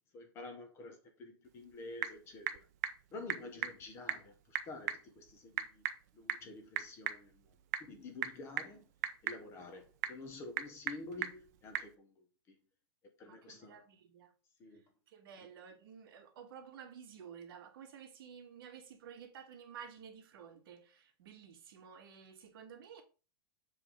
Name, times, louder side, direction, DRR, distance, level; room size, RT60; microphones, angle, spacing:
voice 1, 0.1-2.7 3.1-5.9 6.1-7.4 7.9-8.9 9.2-12.1 12.5-12.6 13.2-13.8 14.6-14.8, left 2 dB, 20° left, 0.9 m, -49 dB
Typing / Telephone, 1.4-12.0, right 11 dB, 40° right, 0.7 m, -42 dB
voice 2, 13.2-14.3 15.1-23.0, right 7 dB, 60° right, 1.6 m, -52 dB
7.5 x 3.4 x 5.4 m
supercardioid pair, 175°, 14 cm